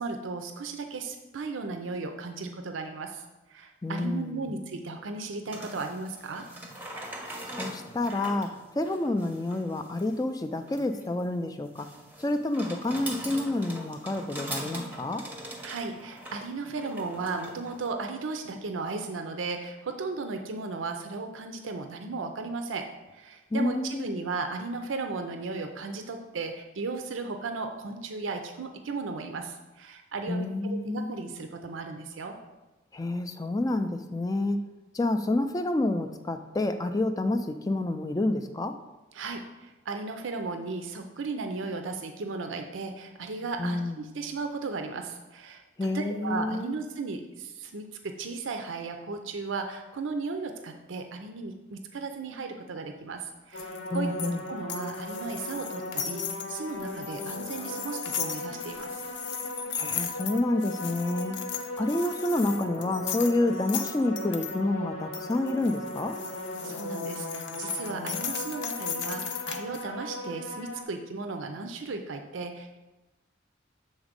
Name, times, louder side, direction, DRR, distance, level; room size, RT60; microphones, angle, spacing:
voice 1, 0.0-3.2 3.5-6.5 15.6-22.9 23.1-32.4 39.1-58.9 66.6-72.8, right 3 dB, 85° right, 6 dB, 0.5 m, -35 dB
voice 2, 3.8-4.6 7.6-11.9 12.2-15.3 23.5-24.2 30.3-31.2 32.9-34.6 34.9-38.8 43.6-44.1 45.8-46.7 53.9-54.4 59.7-61.4 61.8-66.2, left 2 dB, 20° left, 7 dB, 0.3 m, -29 dB
sound 1, 5.5-17.9, right 1 dB, 10° right, 0.7 m, -41 dB
sound 2, 53.5-70.8, left 1 dB, 90° left, 0.9 m, -38 dB
sound 3, 53.6-64.6 65.1-69.8, left 8 dB, 65° left, 0.6 m, -37 dB
7.2 x 4.0 x 5.1 m, 1.1 s
head